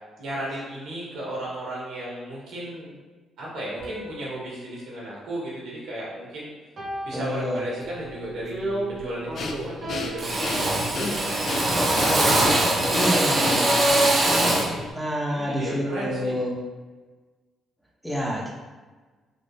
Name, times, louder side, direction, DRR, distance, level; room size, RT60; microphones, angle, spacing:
voice 1, 0.2-3.0 3.4-6.5 7.0-11.6 12.0-16.4, right 1 dB, 80° right, -5 dB, 1.2 m, -35 dB
sound 1, 3.8-6.2 6.8-8.2 9.8-11.5, right 1 dB, 50° right, 1.0 m, -40 dB
voice 2, 7.1-7.6 13.0-13.7 14.9-16.6 18.0-18.5, equal, ahead, -4 dB, 0.7 m, -27 dB
Drill, 7.9-8.1 8.5-9.0 9.3-9.8 10.2-14.8, right 1 dB, 30° right, 0.6 m, -23 dB
Breathing, 9.3-14.9, left 4 dB, 60° left, 0.3 m, -33 dB
3.4 x 2.5 x 2.6 m, 1.3 s
cardioid pair, 90°, 0 cm